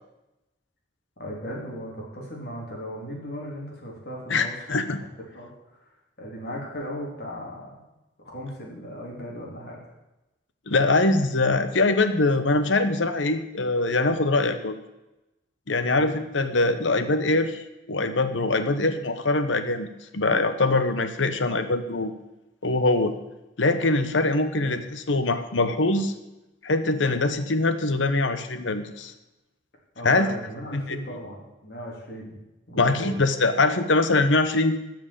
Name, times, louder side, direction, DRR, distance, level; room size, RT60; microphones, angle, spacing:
voice 1, 1.2-4.6 4.9-5.1 5.3-5.5 6.2-7.8 8.2-9.8 15.9-16.1 24.6-24.8 30.0-32.4 32.7-33.2, equal, 55° left, -2 dB, 3.5 m, -37 dB
voice 2, 4.3-5.0 10.7-14.7 15.7-17.6 17.9-19.9 20.1-22.1 22.6-23.1 23.6-26.1 26.6-29.1 30.0-30.3 30.7-31.0 32.8-34.8, left 2 dB, 80° left, 10 dB, 1.0 m, -23 dB
12.5 x 6.1 x 8.6 m, 0.98 s
head